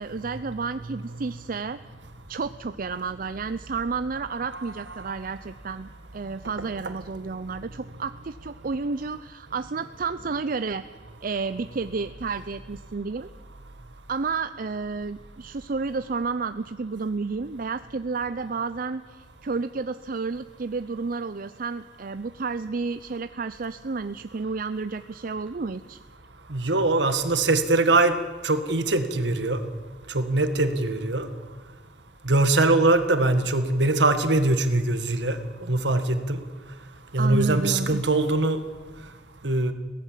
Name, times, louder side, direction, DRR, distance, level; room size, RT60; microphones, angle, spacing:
voice 1, 0.0-1.8 2.3-10.8 11.2-13.3 14.1-26.0 37.2-38.0, right 4 dB, 50° right, 12 dB, 0.5 m, -31 dB
voice 2, 4.5-5.0 26.5-28.2 28.4-29.6 30.1-31.3 32.2-35.4 35.7-36.4 37.1-38.6 39.4-39.7, right 2 dB, 70° right, 9 dB, 1.8 m, -22 dB
22.5 x 17.0 x 7.4 m, 1.4 s
head